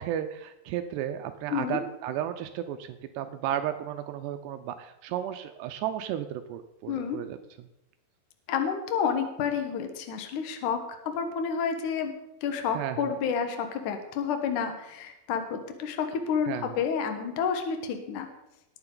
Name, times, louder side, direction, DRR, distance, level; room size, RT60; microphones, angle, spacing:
voice 1, 0.0-7.4 12.7-13.0 16.5-16.7, right 10 dB, 85° right, 8 dB, 2.4 m, -33 dB
voice 2, 6.9-7.2 8.5-10.8 11.0-12.1 12.4-18.3, left 6 dB, 90° left, 6 dB, 1.7 m, -29 dB
19.5 x 9.6 x 3.9 m, 0.89 s
omnidirectional pair, 5.5 m